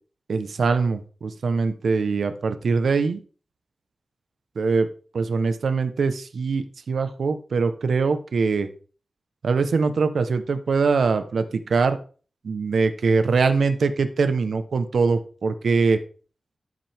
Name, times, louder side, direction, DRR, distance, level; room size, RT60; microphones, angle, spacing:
voice 1, 0.3-3.2 4.6-4.9 5.1-8.7 9.4-12.0 12.4-16.0, right 4 dB, 90° right, 9 dB, 1.1 m, -22 dB
12.5 x 7.6 x 3.6 m, 0.39 s
wide cardioid pair, 140°, 0 cm